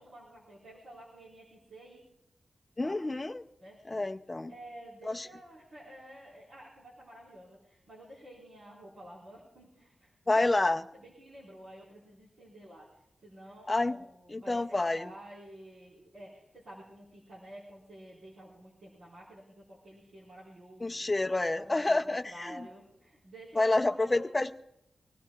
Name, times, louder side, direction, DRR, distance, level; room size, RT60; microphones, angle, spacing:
voice 1, 0.0-2.0 2.8-3.0 3.6-4.1 4.5-10.5 10.9-21.1 21.6-24.2, right 1 dB, 60° right, -5 dB, 4.7 m, -51 dB
voice 2, 2.8-3.4 3.9-4.5 5.1-5.3 10.3-10.8 13.7-14.0 14.3-15.1 20.8-22.6 23.6-24.6, left 2 dB, 20° left, 6 dB, 0.6 m, -28 dB
25.5 x 18.0 x 2.4 m, 0.82 s
wide cardioid pair, 175°, 0 cm